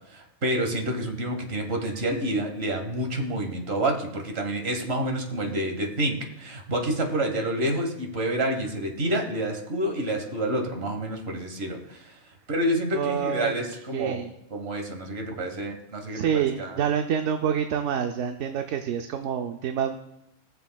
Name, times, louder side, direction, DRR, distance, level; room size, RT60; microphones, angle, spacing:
voice 1, 0.1-12.1 12.5-14.2 14.5-16.8, right 1 dB, 55° right, 3 dB, 1.6 m, -28 dB
voice 2, 12.9-13.5 13.9-14.3 16.1-20.0, right 8 dB, 75° right, 5 dB, 0.9 m, -27 dB
19.0 x 6.8 x 2.3 m, 0.84 s
omnidirectional pair, 1.3 m